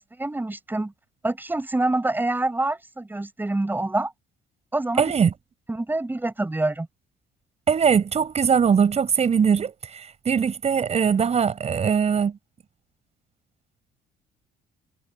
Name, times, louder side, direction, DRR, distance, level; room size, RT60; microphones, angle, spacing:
voice 1, 0.2-0.9 1.2-4.1 4.7-5.1 5.7-6.9, right 2 dB, 10° right, 6.8 m, -26 dB
voice 2, 5.0-5.3 7.7-12.4, right 7 dB, 40° right, 6.8 m, -21 dB
cardioid pair, 110°, 17 cm